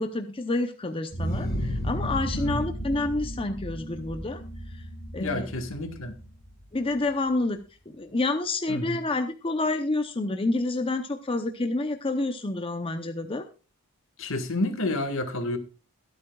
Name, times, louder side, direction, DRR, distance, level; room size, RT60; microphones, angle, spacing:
voice 1, 0.0-4.4 5.1-5.5 6.7-7.6 7.9-13.4, left 2 dB, 25° left, 0.7 m, -28 dB
sound 1, 1.1-6.6, equal, 40° left, 6.0 m, -33 dB
voice 2, 2.3-2.7 5.2-6.1 8.7-9.0 14.2-15.6, left 2 dB, 65° left, 1.7 m, -30 dB
22.5 x 8.4 x 2.4 m
head